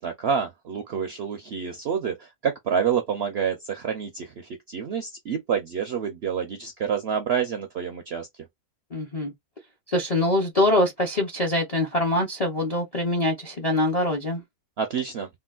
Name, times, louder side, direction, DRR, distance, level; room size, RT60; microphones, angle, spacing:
voice 1, 0.0-8.3 14.8-15.3, right 7 dB, 65° right, 0.6 m, -28 dB
voice 2, 8.9-9.3 9.9-14.4, left 1 dB, 45° left, 0.5 m, -24 dB
3.7 x 2.3 x 2.3 m
omnidirectional pair, 1.6 m